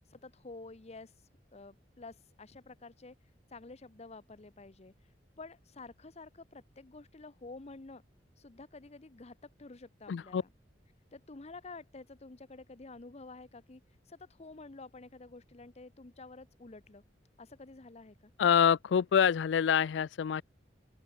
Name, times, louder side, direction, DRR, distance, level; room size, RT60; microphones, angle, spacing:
voice 1, 0.1-1.1 1.5-3.1 3.5-4.9 5.4-8.0 8.4-10.5 11.1-13.8 14.1-17.0 17.4-18.3, left 3 dB, 35° left, 0.9 m, -50 dB
voice 2, 10.1-10.4 18.4-20.4, left 7 dB, 85° left, 0.4 m, -26 dB
open air
head